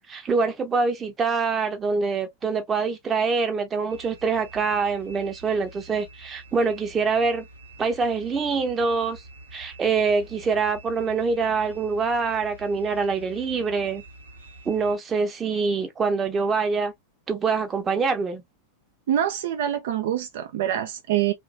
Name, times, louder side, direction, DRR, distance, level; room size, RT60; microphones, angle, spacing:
voice 1, 0.1-7.5 7.8-9.2 9.5-14.0 14.7-16.9 17.3-18.4, right 4 dB, 20° right, 0.7 m, -25 dB
sound 1, 3.9-15.0, right 2 dB, 80° right, 1.0 m, -46 dB
voice 2, 19.1-21.3, right 11 dB, 55° right, 0.4 m, -25 dB
3.1 x 2.5 x 2.3 m
figure-of-eight pair, 90°, 0 cm